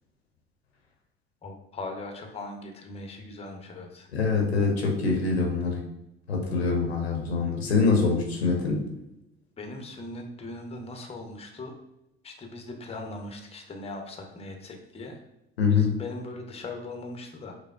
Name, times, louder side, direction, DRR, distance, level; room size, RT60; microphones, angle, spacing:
voice 1, 1.4-4.1 9.6-11.7 12.2-15.2 15.7-17.5, left 2 dB, 20° left, 4 dB, 0.7 m, -39 dB
voice 2, 4.1-5.8 6.3-8.8 15.6-15.9, left 4 dB, 90° left, 1 dB, 0.7 m, -24 dB
4.9 x 2.0 x 2.3 m, 0.87 s
hypercardioid pair, 65°, 30 cm